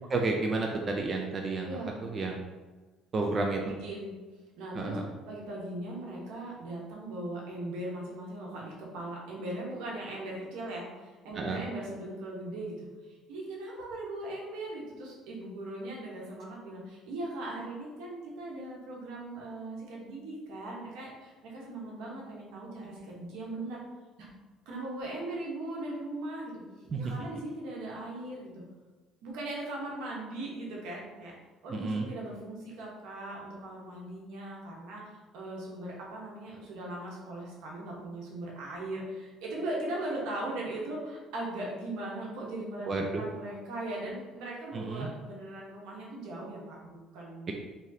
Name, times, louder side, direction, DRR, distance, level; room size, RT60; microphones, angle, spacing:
voice 1, 0.1-2.4 3.1-3.6 4.7-5.0 11.4-11.6 26.9-27.0 31.7-32.1 42.9-43.2 44.7-45.1, right 3 dB, 35° right, 1 dB, 0.4 m, -31 dB
voice 2, 3.5-4.1 4.6-5.0 5.3-23.8 24.2-24.3 24.7-28.5 29.2-31.3 31.6-42.9 43.2-47.5, right 1 dB, 85° right, -3 dB, 1.1 m, -39 dB
3.5 x 3.2 x 2.7 m, 1.3 s
cardioid pair, 105°, 0 cm